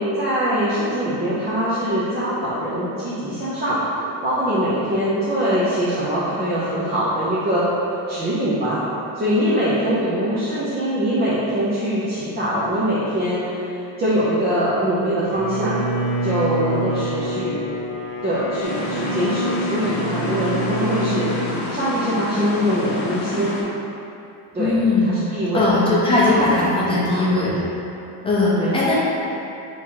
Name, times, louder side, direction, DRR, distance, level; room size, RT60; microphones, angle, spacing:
voice 1, 0.0-7.6 8.1-8.8 9.1-15.8 16.2-17.7 18.2-21.3 21.7-23.5 24.5-24.7 25.0-25.8 26.2-26.6 26.9-27.2 28.6-28.9, equal, 20° right, -11 dB, 0.5 m, -23 dB
Bowed string instrument, 15.3-21.6, right 1 dB, 90° right, 1.3 m, -27 dB
sound 1, 18.6-23.6, left 2 dB, 55° left, 0.8 m, -29 dB
voice 2, 24.6-25.1 25.5-27.6 28.2-28.9, left 2 dB, 10° left, -7 dB, 0.7 m, -19 dB
3.6 x 3.0 x 4.4 m, 2.8 s
cardioid pair, 160°, 44 cm